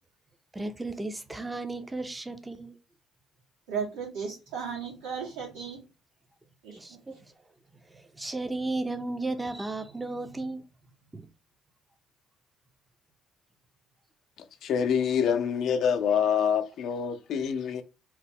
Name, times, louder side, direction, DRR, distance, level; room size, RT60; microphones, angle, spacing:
voice 1, 0.5-2.7 6.7-7.2 7.9-10.6 11.1-11.3, right 2 dB, 15° right, 0.5 m, -34 dB
voice 2, 3.7-5.8 6.6-6.8, right 6 dB, 85° right, 1.4 m, -35 dB
voice 3, 14.6-17.8, left 7 dB, 65° left, 0.4 m, -26 dB
2.9 x 2.1 x 3.5 m
hypercardioid pair, 60°, 0 cm